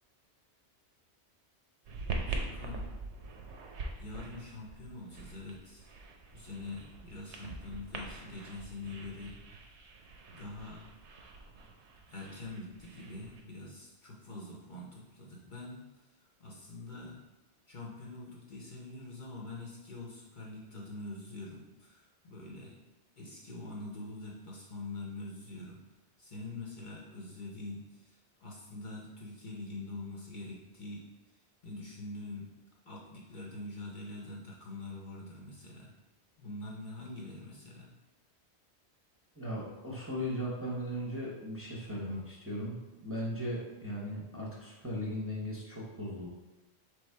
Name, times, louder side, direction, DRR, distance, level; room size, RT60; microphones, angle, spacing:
sound 1, 1.9-13.4, right 3 dB, 80° right, 0.9 m, -43 dB
voice 1, 2.0-2.9 4.0-5.9 6.3-9.7 10.3-10.9 12.1-15.8 16.2-17.2 17.7-22.8 23.2-25.8 26.2-31.0 31.6-32.5 32.8-35.9 36.4-37.9, left 2 dB, 50° left, -3 dB, 0.8 m, -44 dB
voice 2, 39.4-42.8 43.0-46.3, equal, 15° right, -6 dB, 0.7 m, -37 dB
3.5 x 3.3 x 4.4 m, 1.1 s
omnidirectional pair, 1.1 m